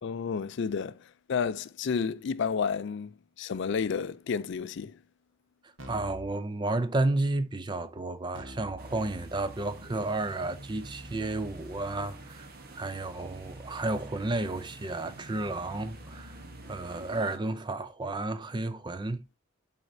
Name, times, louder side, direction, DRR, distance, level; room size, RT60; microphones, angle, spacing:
voice 1, 0.0-3.1 3.4-5.0, left 6 dB, 60° left, 0.4 m, -31 dB
Keyboard (musical), 5.8-6.3 8.3-17.2, equal, 65° right, 1.2 m, -49 dB
voice 2, 5.9-12.5 12.7-16.4 16.7-19.2, right 2 dB, 20° right, 0.5 m, -32 dB
sound 1, 8.8-17.4, right 2 dB, 50° right, 1.0 m, -48 dB
11.0 x 4.2 x 2.7 m
head